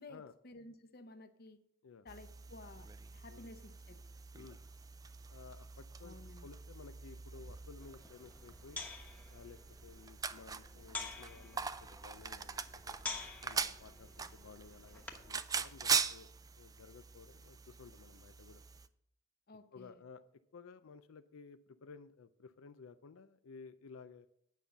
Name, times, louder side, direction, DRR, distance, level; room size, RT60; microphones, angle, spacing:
voice 1, 0.0-1.6 2.0-4.0 6.0-6.4 19.5-20.0, left 2 dB, 50° left, 9 dB, 0.9 m, -54 dB
sound 1, 2.1-18.9, right 6 dB, 20° right, 0.3 m, -42 dB
voice 2, 5.3-8.8 9.3-13.0 13.4-16.3 16.5-18.6 19.7-20.2 20.5-24.3, left 5 dB, 90° left, 10 dB, 0.5 m, -55 dB
sound 2, 7.8-15.4, left 3 dB, 10° left, 1.0 m, -49 dB
9.2 x 5.4 x 7.4 m, 0.71 s
head